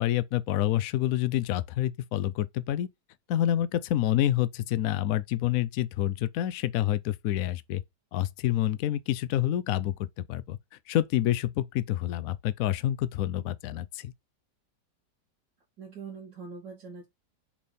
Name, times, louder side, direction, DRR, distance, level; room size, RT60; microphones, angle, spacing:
voice 1, 0.0-2.9 3.3-7.8 8.1-10.6 10.9-14.1, left 12 dB, 70° left, 0.9 m, -28 dB
voice 2, 15.8-17.1, right 5 dB, 80° right, 3.2 m, -42 dB
7.3 x 3.4 x 4.2 m
omnidirectional pair, 1.9 m